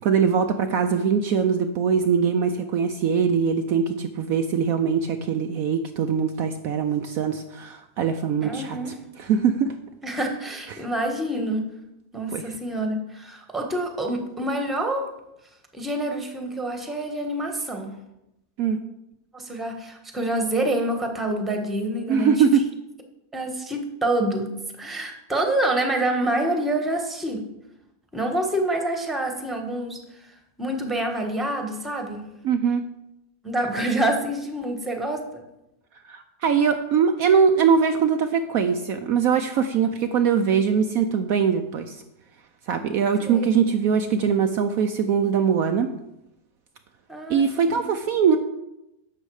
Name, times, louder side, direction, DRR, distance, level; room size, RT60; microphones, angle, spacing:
voice 1, 0.0-9.7 10.7-10.8 12.3-12.4 18.6-18.8 22.1-22.6 32.4-32.8 36.1-42.0 42.7-45.9 47.3-48.4, right 6 dB, 70° right, 7 dB, 1.0 m, -22 dB
voice 2, 8.4-9.0 10.0-11.7 12.1-15.1 15.7-17.9 19.3-22.3 23.3-24.5 24.8-27.4 28.1-32.3 33.4-35.4 43.2-43.6 47.1-47.8, right 1 dB, ahead, 3 dB, 1.2 m, -27 dB
12.0 x 7.7 x 4.8 m, 0.88 s
omnidirectional pair, 1.8 m